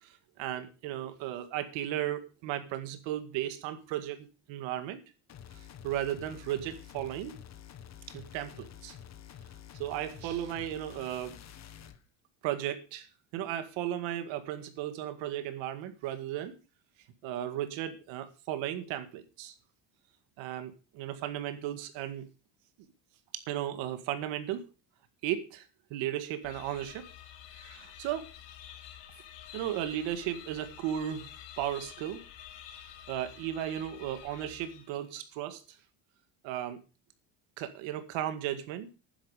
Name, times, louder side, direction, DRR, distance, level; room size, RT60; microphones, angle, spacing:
voice 1, 0.0-5.0 5.5-7.3 8.1-9.0 9.8-11.4 12.4-13.1 13.3-16.6 17.2-19.5 20.4-22.3 23.3-24.7 25.2-27.1 27.6-28.3 29.5-31.3 31.6-32.2 33.1-35.8 36.4-36.8 37.6-38.9, right 11 dB, 85° right, 2.0 m, -35 dB
sound 1, 5.3-12.0, left 9 dB, 35° left, 1.5 m, -49 dB
sound 2, 26.4-35.1, left 11 dB, 70° left, 2.7 m, -49 dB
12.0 x 10.0 x 4.9 m
cardioid pair, 155°, 45 cm